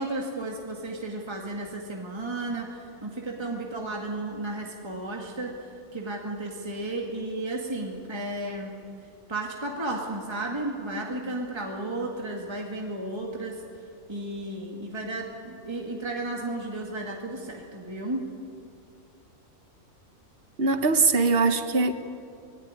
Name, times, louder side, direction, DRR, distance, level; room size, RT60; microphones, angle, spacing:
voice 1, 0.0-8.8 9.3-13.6 14.1-18.3, right 2 dB, 20° right, 0 dB, 2.1 m, -33 dB
voice 2, 20.6-21.9, right 4 dB, 45° right, 9 dB, 1.4 m, -21 dB
24.5 x 18.0 x 9.8 m, 2.5 s
omnidirectional pair, 1.5 m